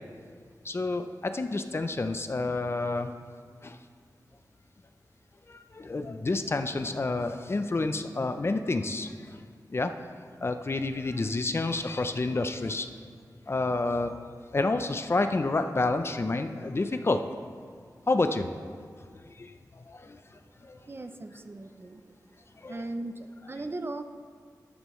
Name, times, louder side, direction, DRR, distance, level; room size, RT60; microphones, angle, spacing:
voice 1, 0.6-3.1 3.6-3.8 5.5-9.4 9.7-9.9 10.4-12.9 13.5-14.2 14.5-17.2 18.1-18.7 19.4-19.5 19.9-20.2 20.6-20.8 22.6-22.8, left 2 dB, 35° left, 8 dB, 0.5 m, -29 dB
voice 2, 20.9-22.1 22.6-24.0, right 2 dB, 35° right, 8 dB, 0.5 m, -38 dB
12.5 x 9.9 x 3.1 m, 2.1 s
wide cardioid pair, 110°, 7 cm